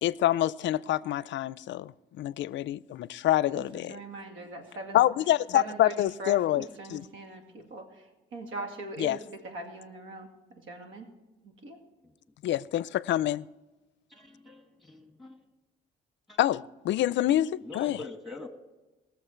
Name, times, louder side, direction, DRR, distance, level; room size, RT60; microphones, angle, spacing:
voice 1, 0.0-4.0 4.9-7.1 9.0-9.2 12.4-13.5 16.4-18.0, left 13 dB, 65° left, 19 dB, 0.4 m, -27 dB
voice 2, 3.6-5.0 5.5-10.3 10.7-11.1 11.4-11.8, right 2 dB, 80° right, 4 dB, 2.3 m, -41 dB
voice 3, 14.1-15.4 16.3-16.4 17.6-18.5, left 3 dB, ahead, 5 dB, 2.0 m, -44 dB
20.0 x 7.0 x 4.5 m, 1.1 s
cardioid pair, 90°, 20 cm